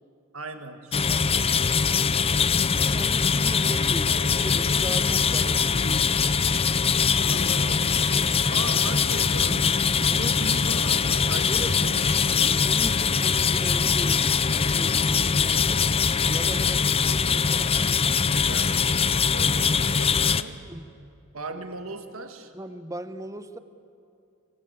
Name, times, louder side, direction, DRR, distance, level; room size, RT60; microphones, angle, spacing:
voice 1, 0.3-2.2 7.2-12.6 18.4-18.9 19.3-20.7 21.3-22.5, right 2 dB, 65° right, 7 dB, 1.9 m, -39 dB
sound 1, 0.9-20.4, left 5 dB, 25° left, 0.6 m, -22 dB
voice 2, 1.1-1.5 2.8-5.8 10.1-10.4 11.5-11.7 12.6-15.8 16.3-18.2 20.7-20.9 22.5-23.6, right 1 dB, 15° right, 10 dB, 1.1 m, -38 dB
Female speech woman speaking, 4.0-6.1 7.1-10.0 10.8-12.7, left 2 dB, 75° left, 6.0 m, -40 dB
25.5 x 21.5 x 8.8 m, 2.5 s
head